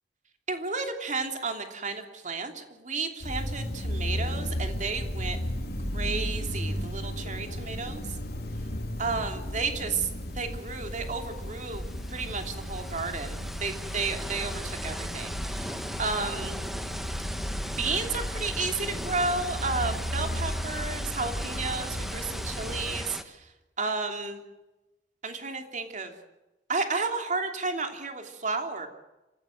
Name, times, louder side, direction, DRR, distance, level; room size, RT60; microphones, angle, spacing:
voice 1, 0.5-5.4 5.9-8.1 9.0-10.1 10.3-11.8 12.1-16.6 17.6-23.5 23.8-24.4 25.2-26.1 26.7-28.9, right 4 dB, 45° right, 5 dB, 3.0 m, -32 dB
sound 1, 3.2-23.0, equal, 60° left, 3.5 m, -34 dB
sound 2, 10.3-10.4 10.6-23.2, equal, ahead, 1.4 m, -39 dB
27.0 x 16.0 x 7.7 m, 1.0 s
head